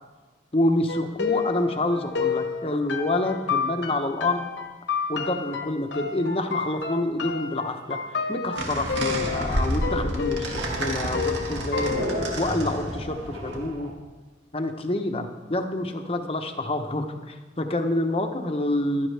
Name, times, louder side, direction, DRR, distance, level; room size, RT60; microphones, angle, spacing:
voice 1, 0.5-4.5 5.1-12.1 12.4-13.9 14.5-19.1, left 1 dB, 30° left, 6 dB, 1.0 m, -27 dB
sound 1, 0.9-12.4, left 6 dB, 65° left, 1.2 m, -30 dB
sound 2, 8.6-13.9, right 1 dB, 65° right, 1.9 m, -29 dB
15.5 x 12.0 x 3.4 m, 1.3 s
head